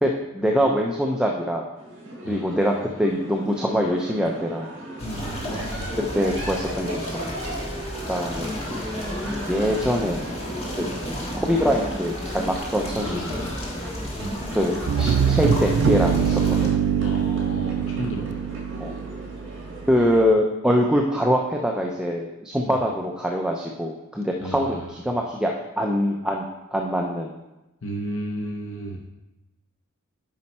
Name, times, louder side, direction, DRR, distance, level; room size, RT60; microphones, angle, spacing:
voice 1, 0.0-1.7 2.3-4.7 6.1-7.2 7.4-7.6 8.1-8.6 9.5-10.2 10.8-10.9 11.3-13.5 14.5-16.7 18.8-18.9 19.9-26.4 26.7-27.4, equal, 5° right, 0 dB, 0.5 m, -24 dB
sound 1, 1.8-20.2, right 1 dB, 60° right, 2.2 m, -38 dB
voice 2, 2.2-2.7 5.0-5.9 13.0-14.4 17.0-18.4 22.6-22.7 24.4-24.9 27.8-29.0, equal, 65° left, 1 dB, 0.8 m, -34 dB
sound 2, 5.0-16.7, left 1 dB, 30° left, 1.6 m, -32 dB
sound 3, 14.9-19.7, right 7 dB, 85° right, 0.4 m, -23 dB
8.6 x 5.4 x 4.2 m, 1.0 s
head